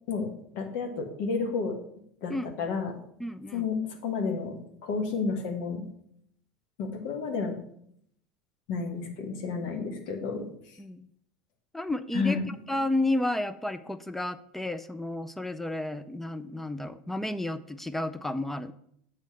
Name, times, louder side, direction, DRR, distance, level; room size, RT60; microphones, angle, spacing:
voice 1, 0.1-1.8 2.2-2.9 3.5-4.5 4.8-5.8 6.8-7.6 8.7-10.8 12.1-12.5, left 4 dB, 60° left, 3 dB, 1.4 m, -31 dB
voice 2, 3.2-3.7 10.3-10.5 10.8-11.1 11.7-12.4 12.7-18.7, left 1 dB, 5° left, 12 dB, 0.4 m, -32 dB
8.1 x 3.2 x 6.1 m, 0.70 s
hypercardioid pair, 80°, 4 cm